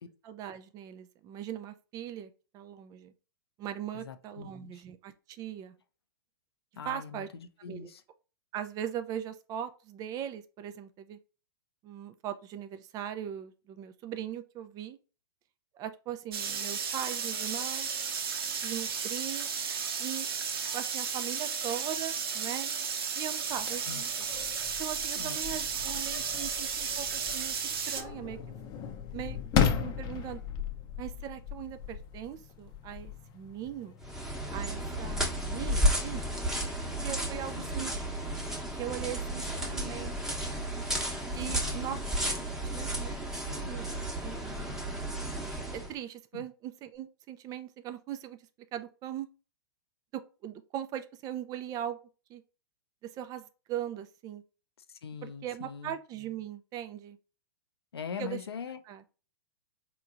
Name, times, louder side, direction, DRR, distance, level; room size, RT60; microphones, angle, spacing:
voice 1, 0.2-3.1 3.6-5.7 6.8-7.3 7.7-7.9 8.5-11.2 11.8-15.0 15.7-17.9 18.6-19.5 20.0-20.3 20.7-22.7 23.2-24.1 24.8-27.5 27.9-28.4 29.1-30.4 31.0-34.0 34.5-36.2 36.8-37.9 38.7-40.4 41.3-42.4 42.7-43.1 43.4-43.9 44.2-44.8 45.9-48.4 48.7-49.3 50.4-52.0 52.3-52.4 53.1-54.4 55.2-57.2 58.2-58.4 58.9-59.0, right 10 dB, 30° right, 0.5 m, -40 dB
voice 2, 3.9-4.8 6.8-8.0 23.9-24.0 25.2-25.4 35.1-35.2 37.6-37.8 41.5-41.9 46.3-46.4 54.9-55.9 57.9-58.8, left 7 dB, 80° left, 0.6 m, -42 dB
sound 1, 16.3-28.0, right 6 dB, 70° right, 0.8 m, -34 dB
sound 2, 23.5-34.5, left 8 dB, 30° left, 0.6 m, -36 dB
sound 3, 34.0-45.9, right 1 dB, 5° right, 1.0 m, -33 dB
4.3 x 2.9 x 2.5 m
hypercardioid pair, 115°, 13 cm